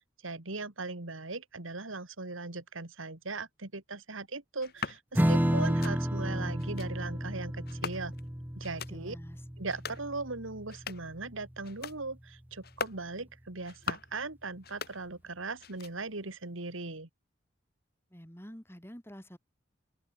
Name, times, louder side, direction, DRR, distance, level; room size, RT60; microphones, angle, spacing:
voice 1, 0.2-8.1 8.6-9.2 9.6-17.1, right 3 dB, 90° right, 2.5 m, -39 dB
sound 1, 4.6-5.0 5.6-6.0 6.6-6.9 7.7-8.3 8.6-9.0 9.6-10.1 10.6-11.2 11.6-12.0 12.6-13.0 13.6-14.2 14.6-15.3 15.6-16.2, left 5 dB, 50° left, 1.9 m, -41 dB
Strum, 5.1-12.0, equal, 10° right, 1.3 m, -32 dB
voice 2, 8.9-9.4 18.1-19.4, equal, 10° left, 6.3 m, -48 dB
open air
head